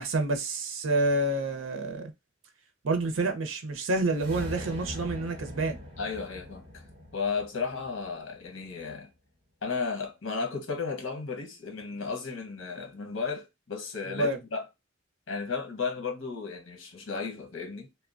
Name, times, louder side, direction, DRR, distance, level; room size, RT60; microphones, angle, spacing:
voice 1, 0.0-2.1 2.8-5.8 14.0-14.4, right 2 dB, 90° right, 0.6 m, -28 dB
sound 1, 4.0-8.4, left 1 dB, 30° right, 1.1 m, -42 dB
voice 2, 6.0-6.8 7.1-9.1 9.6-14.7 15.3-17.9, left 5 dB, 75° left, 0.9 m, -34 dB
2.8 x 2.1 x 2.4 m
head